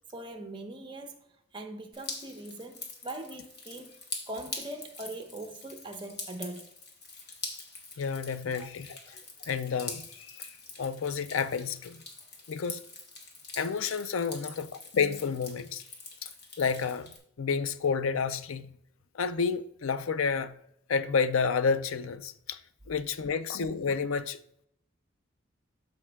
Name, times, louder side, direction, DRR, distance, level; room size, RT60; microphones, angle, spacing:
voice 1, 0.1-1.2 1.5-3.9 4.3-6.7 8.6-8.7 9.1-9.3, right 1 dB, 25° right, 0.9 m, -41 dB
Drip, 1.9-17.2, left 3 dB, 55° left, 1.6 m, -44 dB
voice 2, 8.0-9.0 9.5-10.5 10.8-12.0 12.5-12.8 13.6-15.8 16.2-16.3 16.6-17.1 17.4-18.7 19.1-20.5 20.9-22.6 22.9-24.4, left 5 dB, 85° left, 0.5 m, -30 dB
13.0 x 5.3 x 2.3 m
head